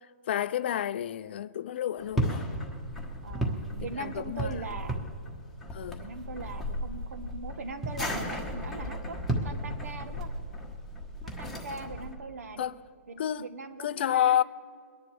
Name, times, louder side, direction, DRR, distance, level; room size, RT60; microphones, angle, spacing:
voice 1, 0.3-2.5 4.0-4.5 5.7-6.0 12.6-12.7 13.2-13.5 13.8-14.4, left 10 dB, 45° left, 0.4 m, -29 dB
sound 1, 2.0-12.1, equal, ahead, 1.2 m, -34 dB
voice 2, 3.2-5.0 6.0-9.2 9.4-10.3 11.4-12.7 13.1-14.4, right 3 dB, 70° right, 1.4 m, -40 dB
23.5 x 10.5 x 3.5 m
hypercardioid pair, 165°, 8 cm